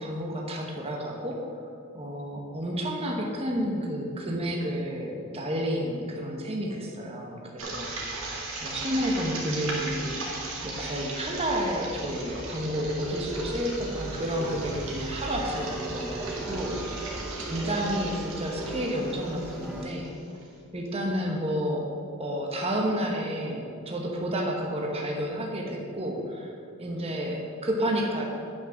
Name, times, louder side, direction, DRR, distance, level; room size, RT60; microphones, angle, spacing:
voice 1, 0.0-1.7 1.9-8.2 8.6-10.2 10.6-17.1 17.4-20.1 20.7-21.9 22.2-26.5 26.8-28.2, equal, 30° right, 0 dB, 1.2 m, -30 dB
sound 1, 7.6-20.4, right 2 dB, 70° right, 2.1 m, -38 dB
sound 2, 13.0-19.8, right 3 dB, ahead, 0.9 m, -38 dB
9.0 x 6.1 x 6.3 m, 2.5 s
head